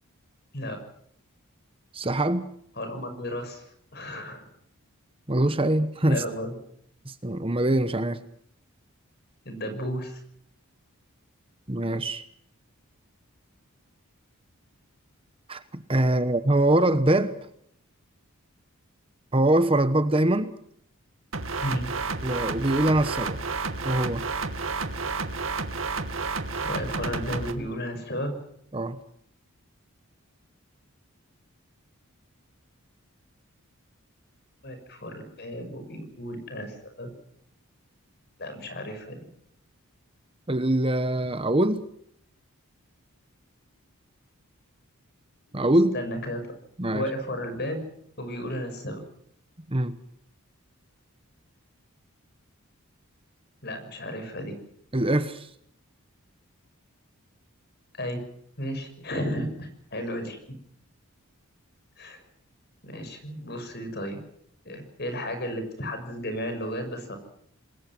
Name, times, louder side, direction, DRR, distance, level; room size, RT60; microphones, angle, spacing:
voice 1, 1.9-2.5 5.3-6.2 7.0-8.2 11.7-12.3 15.5-15.6 15.9-17.3 19.3-20.5 22.2-23.4 23.8-24.2 28.7-29.0 40.5-41.8 45.5-46.0 46.8-47.1 49.7-50.0 54.9-55.5, right 1 dB, 25° right, 11 dB, 1.1 m, -23 dB
voice 2, 2.8-3.6 3.9-4.4 6.1-6.5 9.4-10.2 21.6-21.9 26.6-28.4 34.6-37.1 38.4-39.2 45.9-46.4 46.9-47.8 48.2-49.0 53.6-54.5 57.9-58.2 58.6-60.4 62.0-62.2 62.8-64.2 64.6-67.2, equal, 45° left, 8 dB, 6.3 m, -33 dB
sound 1, 21.3-27.5, right 4 dB, 60° right, 2.4 m, -31 dB
27.5 x 21.0 x 6.1 m, 0.69 s
head